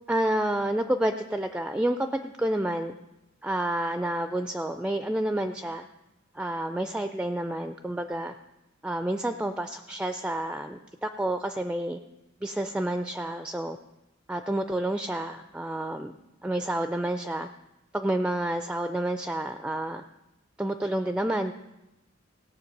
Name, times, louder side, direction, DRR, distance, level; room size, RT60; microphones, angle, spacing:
voice 1, 0.1-2.9 3.4-5.8 6.3-8.3 8.8-12.0 12.4-13.8 14.3-16.1 16.4-17.5 17.9-20.0 20.6-21.5, right 1 dB, 5° right, 8 dB, 0.3 m, -29 dB
17.5 x 7.0 x 5.3 m, 0.97 s
head